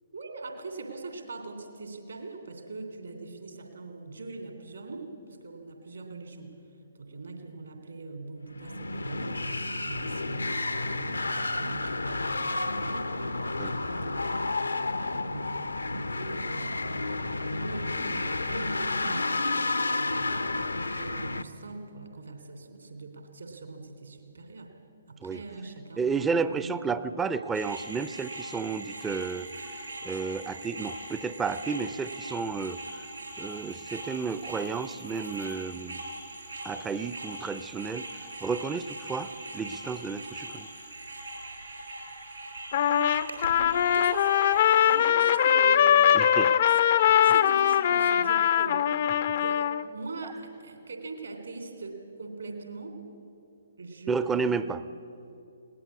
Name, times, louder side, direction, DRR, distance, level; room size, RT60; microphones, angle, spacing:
voice 1, 0.1-6.6 6.9-14.3 14.6-24.7 25.1-26.8 43.5-45.9 46.7-48.8 49.4-53.0 53.8-54.8, right 3 dB, 70° right, 5 dB, 3.0 m, -42 dB
sound 1, 8.5-21.4, left 2 dB, 75° left, 0.8 m, -31 dB
voice 2, 26.0-29.5 30.0-32.8 33.4-36.0 36.6-38.1 38.4-40.7 46.1-46.5 54.1-54.8, right 5 dB, 10° right, 13 dB, 0.5 m, -31 dB
sound 2, 27.5-45.1, right 2 dB, 85° right, 5.2 m, -41 dB
Trumpet, 42.7-49.8, left 10 dB, 45° left, 0.5 m, -22 dB
21.0 x 18.0 x 8.4 m, 2.8 s
figure-of-eight pair, 130°, 0 cm